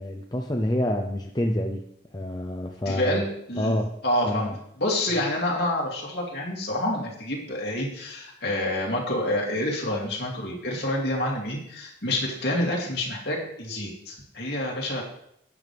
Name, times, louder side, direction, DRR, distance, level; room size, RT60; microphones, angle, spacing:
voice 1, 0.0-1.9 2.1-3.2 3.6-3.9 4.2-4.5, left 1 dB, 20° left, 2 dB, 0.6 m, -27 dB
voice 2, 2.9-3.8 4.0-4.5 4.8-15.0, left 1 dB, 55° left, -2 dB, 3.0 m, -28 dB
12.0 x 9.1 x 3.5 m, 0.72 s
head